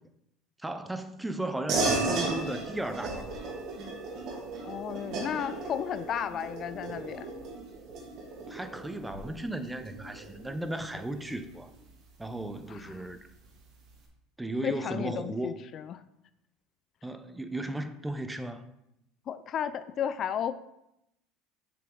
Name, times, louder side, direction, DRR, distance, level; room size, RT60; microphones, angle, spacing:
voice 1, 0.6-3.4 8.5-11.7 12.2-13.2 14.4-15.5 17.0-18.7, right 1 dB, 10° right, 0.6 m, -35 dB
sound 1, 1.7-11.6, right 2 dB, 55° right, 2.1 m, -35 dB
voice 2, 4.6-7.3 12.7-13.0 14.6-16.0 19.3-20.5, left 9 dB, 45° left, 0.4 m, -34 dB
6.8 x 5.8 x 3.8 m
supercardioid pair, 100°, 0 cm